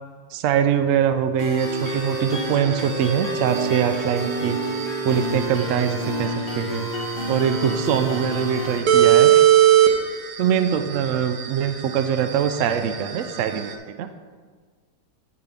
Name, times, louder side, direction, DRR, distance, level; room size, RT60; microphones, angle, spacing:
voice 1, 0.3-4.6 5.0-6.9 7.3-9.4 10.4-14.1, right 9 dB, 80° right, 9 dB, 0.7 m, -23 dB
sound 1, 1.4-8.8, right 1 dB, 35° left, 1.5 m, -28 dB
sound 2, 1.6-13.7, right 11 dB, 65° right, 1.1 m, -21 dB
9.9 x 3.8 x 5.8 m, 1.5 s
omnidirectional pair, 1.9 m